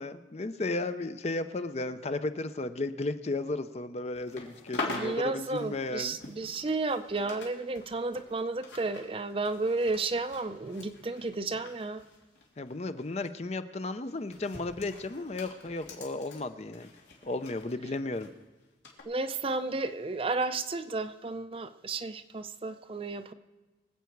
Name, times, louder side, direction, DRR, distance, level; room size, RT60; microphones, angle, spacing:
voice 1, 0.0-6.2 12.6-16.9 17.2-18.3, left 2 dB, 35° left, 11 dB, 0.5 m, -34 dB
sound 1, 4.1-7.5 7.7-12.7 13.0-13.3 14.0-18.3 18.8-19.0, left 2 dB, 90° left, 2.9 m, -44 dB
voice 2, 4.8-12.0 19.1-23.3, right 3 dB, 30° right, 10 dB, 0.5 m, -32 dB
23.5 x 8.2 x 4.6 m, 1.2 s
head